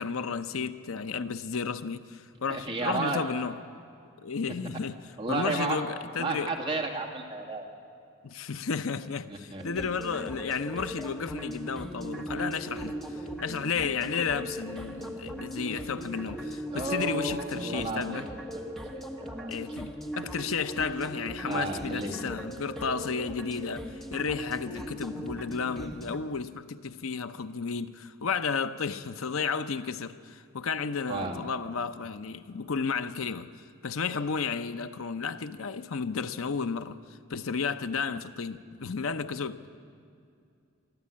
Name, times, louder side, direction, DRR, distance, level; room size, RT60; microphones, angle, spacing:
voice 1, 0.0-3.6 4.2-5.0 5.3-6.5 8.2-18.3 19.5-39.7, left 5 dB, 75° left, 0.7 m, -33 dB
voice 2, 2.5-3.2 5.2-5.8 6.2-7.7 9.3-9.6 16.7-18.3 18.5-19.6 21.5-22.2 31.1-31.4, right 3 dB, 25° right, 2.5 m, -33 dB
sound 1, 9.6-26.2, equal, ahead, 1.3 m, -39 dB
23.0 x 13.5 x 8.6 m
head